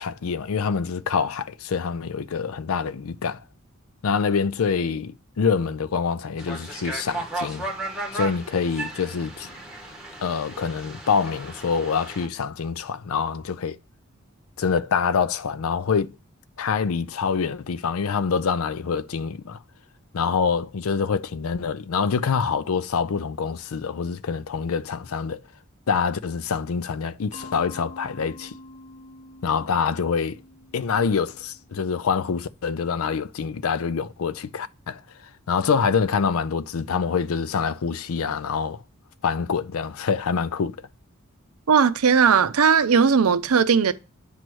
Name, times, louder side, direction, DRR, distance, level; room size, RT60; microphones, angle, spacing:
voice 1, 0.0-3.4 4.0-7.6 8.1-9.5 10.2-13.8 14.6-16.1 16.6-19.6 20.1-25.4 25.9-28.5 29.4-30.4 30.7-35.0 35.5-38.8 39.2-40.8, left 6 dB, 70° left, 0.5 m, -25 dB
sound 1, 6.4-12.3, right 2 dB, 5° right, 1.6 m, -35 dB
Mallet percussion, 27.3-32.1, left 2 dB, 35° left, 1.7 m, -46 dB
voice 2, 41.7-43.9, right 6 dB, 90° right, 0.6 m, -18 dB
9.2 x 3.1 x 6.1 m
head